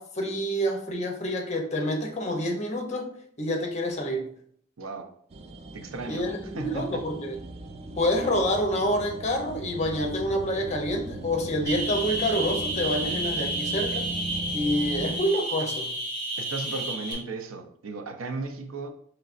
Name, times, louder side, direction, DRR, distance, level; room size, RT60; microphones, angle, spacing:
voice 1, 0.0-3.1 3.4-4.3 6.1-7.4 8.0-14.1 14.5-15.9, equal, 35° left, 2 dB, 0.6 m, -27 dB
voice 2, 4.8-5.1 5.7-6.3 6.5-7.1 16.4-18.9, right 3 dB, 90° right, 7 dB, 0.5 m, -35 dB
sound 1, 5.3-15.2, right 2 dB, 30° right, 0.3 m, -38 dB
sound 2, 11.7-17.1, right 1 dB, 50° right, 1.6 m, -31 dB
4.7 x 3.3 x 2.5 m, 0.64 s
head